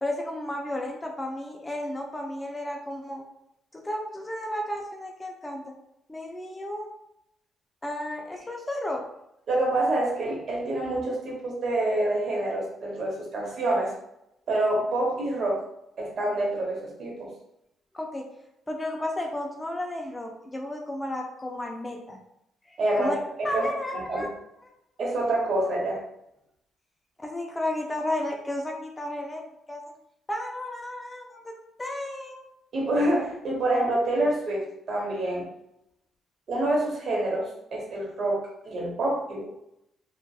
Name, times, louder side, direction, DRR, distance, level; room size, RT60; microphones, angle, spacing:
voice 1, 0.0-3.2 3.7-5.6 6.1-6.9 7.8-9.0 17.9-18.3 18.7-22.2 22.7-23.2 23.4-24.3 24.6-24.7 27.2-29.4 29.7-29.8 30.3-31.5 31.8-32.4, left 1 dB, 15° left, 1 dB, 0.4 m, -33 dB
voice 2, 9.5-13.9 14.5-15.6 16.0-17.3 22.8-23.7 23.9-24.3 25.0-26.0 32.7-35.5 36.5-39.4, right 1 dB, 60° right, -2 dB, 0.9 m, -27 dB
2.6 x 2.3 x 2.3 m, 0.81 s
cardioid pair, 90°, 0 cm